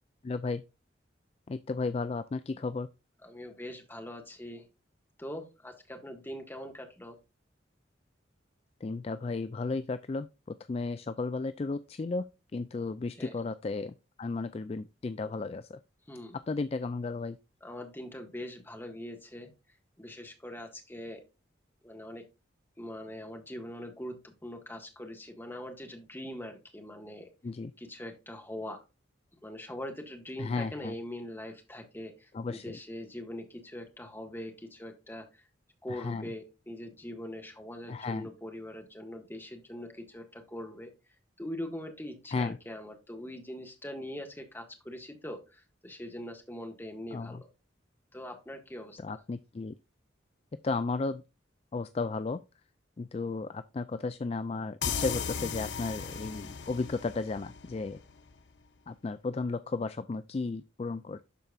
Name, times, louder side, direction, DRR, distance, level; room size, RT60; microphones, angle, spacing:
voice 1, 0.2-0.6 1.5-2.9 8.8-12.3 12.5-15.8 16.5-17.4 27.4-27.7 30.4-30.9 32.3-32.8 35.9-36.3 37.9-38.3 42.3-42.6 47.1-47.4 49.0-49.7 50.6-51.2 51.7-52.4 53.0-58.0 58.9-61.2, left 3 dB, 30° left, 0.3 m, -34 dB
voice 2, 3.2-4.6 5.2-7.2 13.1-13.3 16.1-16.4 17.6-19.5 20.0-21.2 21.8-22.2 22.8-27.3 27.8-28.8 29.4-35.4 35.8-40.9 41.4-47.5 48.1-49.2, left 1 dB, 10° left, 1.7 m, -42 dB
sound 1, 54.8-58.3, left 6 dB, 70° left, 0.8 m, -36 dB
12.0 x 4.5 x 2.4 m
head